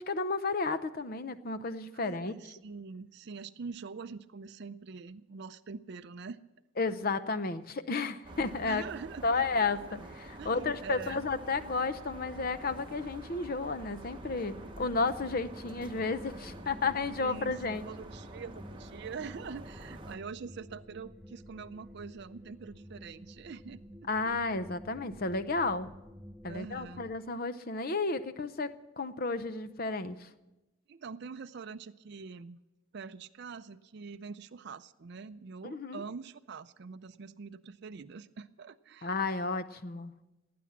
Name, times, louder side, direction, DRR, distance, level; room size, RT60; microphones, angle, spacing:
voice 1, 0.0-2.3 6.8-8.8 9.2-17.8 24.1-25.9 26.4-30.3 35.6-36.0 39.0-40.1, left 3 dB, 45° left, 12 dB, 0.7 m, -32 dB
voice 2, 1.9-6.4 8.6-9.7 10.4-11.3 17.2-23.8 24.2-24.4 26.5-27.1 30.9-32.6 32.9-39.2, right 5 dB, 50° right, 10 dB, 0.4 m, -44 dB
sound 1, 8.2-20.2, right 1 dB, 25° right, 1.0 m, -47 dB
sound 2, 14.1-27.2, equal, 5° right, 0.5 m, -51 dB
18.0 x 9.4 x 7.4 m, 1.0 s
head